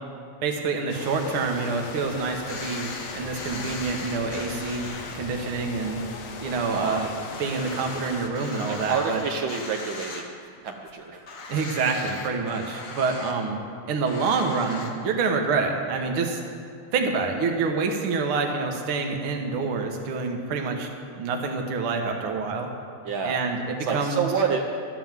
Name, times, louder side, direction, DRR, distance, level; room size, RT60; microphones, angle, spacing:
voice 1, 0.4-2.9 3.2-4.9 5.1-6.0 6.4-7.1 7.4-9.2 11.5-13.6 13.9-16.4 16.9-20.9 21.2-22.7 23.2-24.2, right 4 dB, 55° right, 2 dB, 1.9 m, -27 dB
sound 1, 0.9-8.3, left 4 dB, 65° left, 2.2 m, -39 dB
sound 2, 2.5-5.2 5.6-5.7 6.1-6.2 6.4-10.6 10.9-11.0 11.3-13.3 14.1-14.9, left 3 dB, 45° left, 1.0 m, -39 dB
voice 2, 6.7-7.0 8.7-10.2 10.6-11.2 23.0-23.4 23.8-24.8, right 6 dB, 85° right, 2 dB, 1.0 m, -28 dB
13.0 x 9.4 x 7.5 m, 2.4 s
omnidirectional pair, 3.3 m